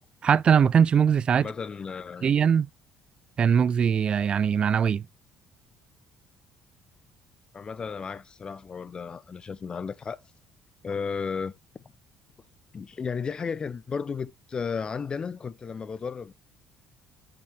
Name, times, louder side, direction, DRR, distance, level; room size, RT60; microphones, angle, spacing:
voice 1, 0.2-1.5 2.2-2.7 3.4-5.0, right 7 dB, 45° right, 0.3 m, -21 dB
voice 2, 1.3-2.3 7.5-10.2 10.8-11.5 12.7-16.3, left 5 dB, 35° left, 0.5 m, -34 dB
6.2 x 6.0 x 3.2 m
hypercardioid pair, 60°, 2 cm